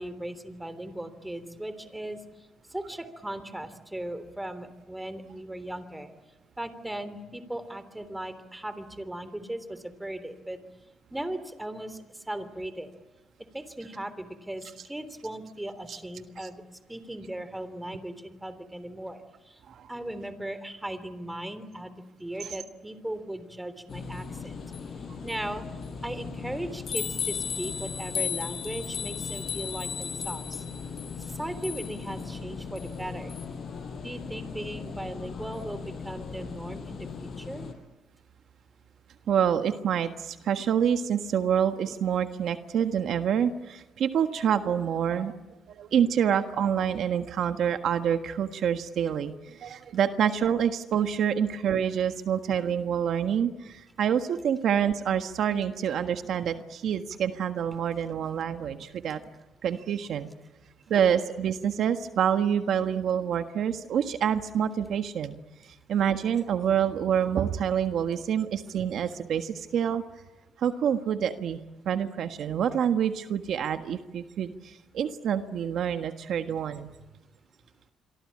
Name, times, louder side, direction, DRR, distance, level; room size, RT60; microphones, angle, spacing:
voice 1, 0.0-2.2 2.7-6.1 6.6-10.6 11.1-12.0 12.3-12.9 13.5-16.6 16.9-19.2 19.9-21.9 22.2-24.5 25.2-25.6 26.0-30.6 31.4-33.3 34.0-37.7, right 1 dB, 10° right, 12 dB, 3.4 m, -37 dB
sound 1, 23.9-37.7, left 6 dB, 55° left, 5.4 m, -36 dB
voice 2, 39.3-45.4 45.7-59.2 59.6-60.3 60.9-65.3 65.9-70.0 70.6-76.9, right 8 dB, 70° right, 7 dB, 1.5 m, -27 dB
27.5 x 23.5 x 8.7 m, 1.1 s
cardioid pair, 90°, 0 cm